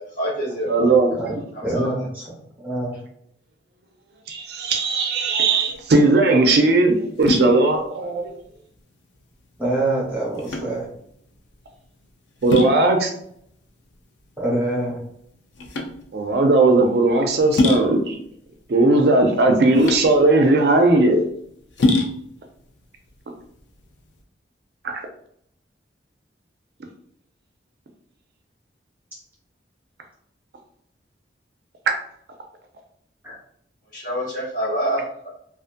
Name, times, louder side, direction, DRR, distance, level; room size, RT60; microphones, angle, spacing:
voice 1, 0.0-0.9 1.5-1.9 33.9-35.3, equal, 45° left, -6 dB, 1.1 m, -27 dB
voice 2, 0.7-1.4 4.3-8.4 12.4-13.1 16.1-18.2 18.7-21.2 24.8-24.9, right 2 dB, 60° right, 3 dB, 0.4 m, -17 dB
voice 3, 1.6-3.0 9.6-10.8 14.4-15.0 33.2-33.4, right 1 dB, 10° right, -6 dB, 0.9 m, -25 dB
sound 1, 5.7-24.2, left 2 dB, 80° left, 0.5 m, -27 dB
2.5 x 2.4 x 2.5 m, 0.69 s
head